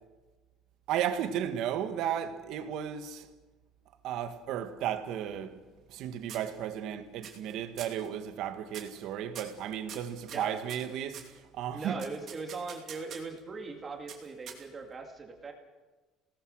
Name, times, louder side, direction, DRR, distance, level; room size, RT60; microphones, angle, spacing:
voice 1, 0.9-3.3 4.0-5.5 5.9-11.2 11.5-12.0, right 10 dB, 60° right, 1.8 m, -34 dB
sound 1, 5.1-6.0 6.3-6.9 7.2-7.5 7.8-8.1 8.7-9.0 9.3-11.3 12.0-13.4 14.1-14.9, right 8 dB, 40° right, 2.7 m, -46 dB
voice 2, 11.7-15.5, right 4 dB, 20° right, 2.2 m, -39 dB
26.5 x 18.5 x 6.5 m
cardioid pair, 165°, 0 cm